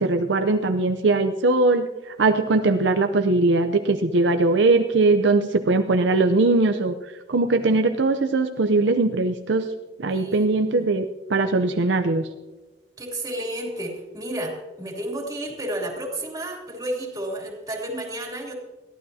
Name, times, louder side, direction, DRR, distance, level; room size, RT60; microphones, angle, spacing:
voice 1, 0.0-6.9 7.3-9.7 10.0-12.3, right 3 dB, 70° right, 6 dB, 0.6 m, -20 dB
voice 2, 10.1-10.9 13.0-18.5, right 1 dB, 20° right, -1 dB, 3.1 m, -32 dB
21.5 x 14.5 x 2.8 m, 1.2 s
head